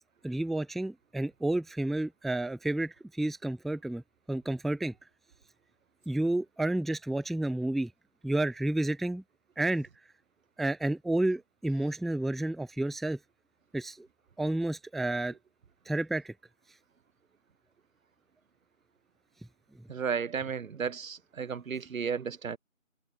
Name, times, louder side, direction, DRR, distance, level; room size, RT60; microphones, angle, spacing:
voice 1, 0.2-4.0 4.3-4.9 6.1-7.9 8.2-9.2 9.6-9.9 10.6-13.2 13.7-14.1 14.4-15.3 15.9-16.3 19.8-19.9, right 1 dB, ahead, 0.4 m, -30 dB
voice 2, 19.9-22.6, right 6 dB, 85° right, 0.6 m, -33 dB
figure-of-eight pair, 170°, 40 cm